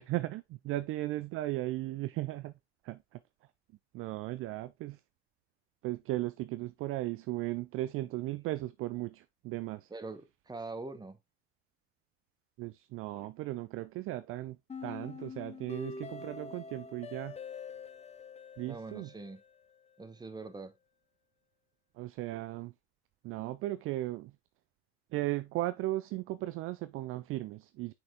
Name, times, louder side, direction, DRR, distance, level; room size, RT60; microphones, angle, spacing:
voice 1, 0.0-2.5 2.8-3.2 3.9-5.0 5.8-9.9 12.6-17.4 18.6-19.1 21.9-22.7 23.2-24.3 25.1-27.9, right 17 dB, 40° right, 0.4 m, -36 dB
voice 2, 9.9-11.2 18.7-19.4 20.0-20.7, right 3 dB, 10° right, 1.1 m, -43 dB
sound 1, 14.7-19.7, left 5 dB, 20° left, 1.0 m, -45 dB
5.9 x 4.5 x 3.5 m
hypercardioid pair, 70°, 34 cm